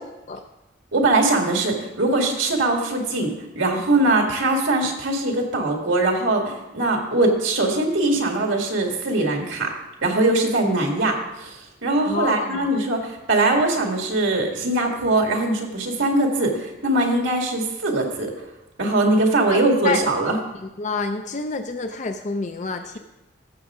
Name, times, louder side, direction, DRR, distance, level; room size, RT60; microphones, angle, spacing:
voice 1, 0.9-9.7 10.0-18.3 18.8-20.4, right 2 dB, 80° right, 2 dB, 2.0 m, -21 dB
voice 2, 12.0-12.7 19.5-20.0 20.8-23.0, left 4 dB, 40° left, 7 dB, 0.5 m, -28 dB
14.5 x 7.1 x 3.7 m, 1.0 s
head